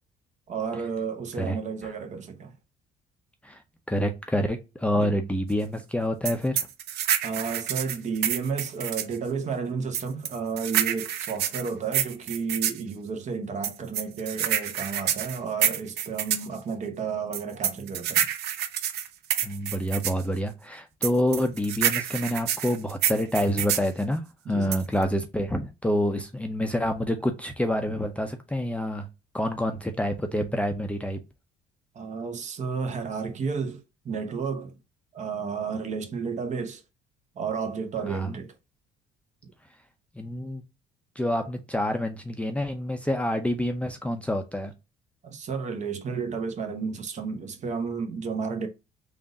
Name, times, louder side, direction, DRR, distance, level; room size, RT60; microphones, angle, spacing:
voice 1, 0.5-2.5 5.0-5.1 7.2-18.3 24.4-24.7 31.9-34.8 35.1-36.8 37.4-38.5 39.4-39.5 45.2-48.7, right 5 dB, 45° right, 0.9 m, -32 dB
voice 2, 3.9-6.7 19.4-29.1 29.3-31.2 38.1-38.3 40.2-40.6 41.2-44.7, equal, 5° left, 0.6 m, -27 dB
sound 1, 6.3-9.2 9.9-12.8 13.6-16.5 17.3-20.2 21.0-23.9 24.7-25.0, right 10 dB, 80° right, 0.7 m, -27 dB
3.6 x 2.5 x 3.8 m
cardioid pair, 110°, 17 cm